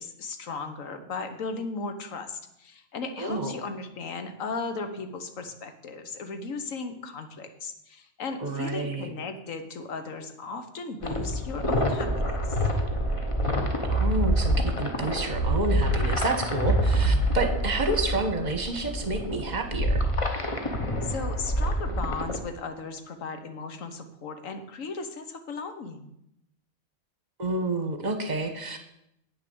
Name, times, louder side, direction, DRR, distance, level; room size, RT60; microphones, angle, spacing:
voice 1, 0.0-12.6 21.0-26.1, left 4 dB, 85° left, 8 dB, 1.5 m, -36 dB
voice 2, 3.2-3.5 8.4-9.1 13.9-20.0 27.4-28.8, right 2 dB, 35° right, 6 dB, 1.2 m, -29 dB
sound 1, 11.0-22.4, equal, 25° left, 1.1 m, -26 dB
8.8 x 6.8 x 6.9 m, 0.81 s
omnidirectional pair, 1.3 m